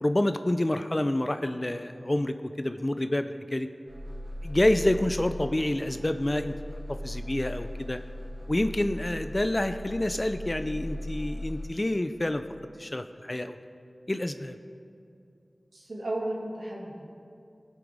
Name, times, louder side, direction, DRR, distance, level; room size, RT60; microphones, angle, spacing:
voice 1, 0.0-3.7 4.4-6.6 7.0-8.0 8.5-12.4 12.8-13.6 14.1-14.6, left 1 dB, 30° left, 9 dB, 0.5 m, -28 dB
sound 1, 3.9-11.7, left 1 dB, 45° right, 3.3 m, -38 dB
voice 2, 15.7-17.0, right 1 dB, 80° right, -5 dB, 2.0 m, -34 dB
19.0 x 8.2 x 3.6 m, 2.5 s
wide cardioid pair, 50°, 0 cm